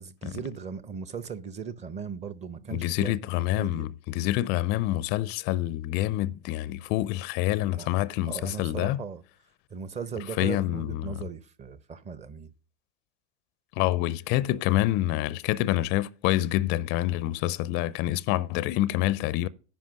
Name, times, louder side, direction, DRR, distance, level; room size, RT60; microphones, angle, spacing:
voice 1, 0.0-3.2 3.5-3.9 7.7-7.9 8.3-9.2 9.7-12.5, right 6 dB, 20° right, 0.7 m, -38 dB
voice 2, 2.7-9.0 10.4-11.1 13.8-19.5, left 15 dB, 30° left, 0.4 m, -27 dB
10.5 x 5.5 x 6.4 m
hypercardioid pair, 100°, 33 cm